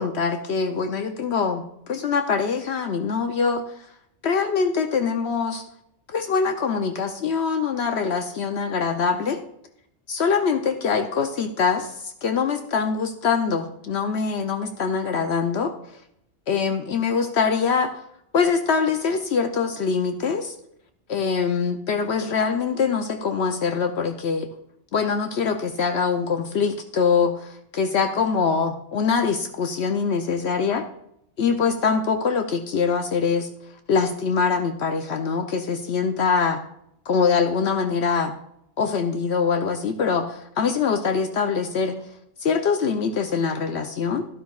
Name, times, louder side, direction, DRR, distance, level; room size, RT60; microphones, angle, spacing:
voice 1, 0.0-3.6 4.2-5.6 6.1-9.4 10.1-15.7 16.5-17.9 18.3-20.5 21.1-24.5 24.9-30.8 31.4-33.5 33.9-36.6 37.1-38.3 38.8-42.0 42.4-44.2, left 5 dB, 70° left, 6 dB, 1.0 m, -23 dB
12.5 x 12.0 x 2.4 m, 0.75 s
omnidirectional pair, 1.2 m